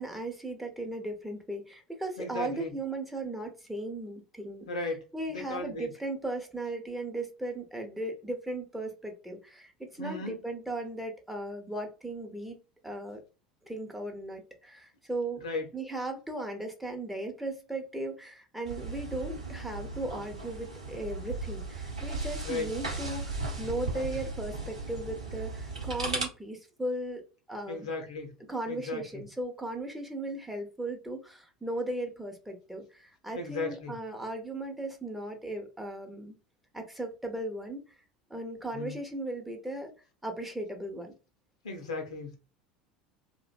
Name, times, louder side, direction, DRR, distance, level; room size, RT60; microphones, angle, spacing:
voice 1, 0.0-12.6 12.8-13.2 13.6-15.4 15.7-27.9 28.5-36.3 36.7-37.8 38.3-39.9 40.2-41.1, right 1 dB, 5° right, 0.6 m, -37 dB
voice 2, 2.2-2.7 4.7-5.0 5.3-5.9 10.0-10.4 15.4-15.7 22.4-22.7 27.7-28.3 28.7-29.2 33.3-34.0 38.7-39.0 41.6-42.4, left 3 dB, 75° left, 0.6 m, -35 dB
sound 1, 18.6-26.2, right 3 dB, 85° right, 0.7 m, -36 dB
2.5 x 2.1 x 2.4 m
figure-of-eight pair, 70°, 3 cm